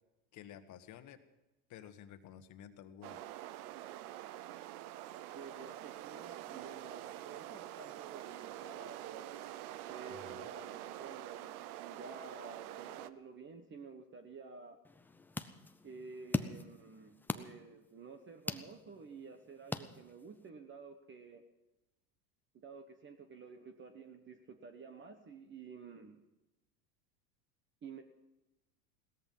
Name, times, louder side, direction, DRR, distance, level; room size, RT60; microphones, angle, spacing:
voice 1, 0.3-1.2 1.7-3.2 10.1-10.4, left 9 dB, 40° left, 9 dB, 1.4 m, -52 dB
sound 1, 3.0-13.1, right 13 dB, 75° right, 0.8 m, -46 dB
voice 2, 5.3-9.5 9.9-14.8 15.8-21.4 22.5-26.2 27.8-28.0, right 5 dB, 25° right, 8 dB, 1.2 m, -51 dB
sound 2, 14.8-20.5, left 2 dB, 5° left, 0.4 m, -42 dB
17.5 x 13.5 x 5.5 m, 1.0 s
supercardioid pair, 120°, 45 cm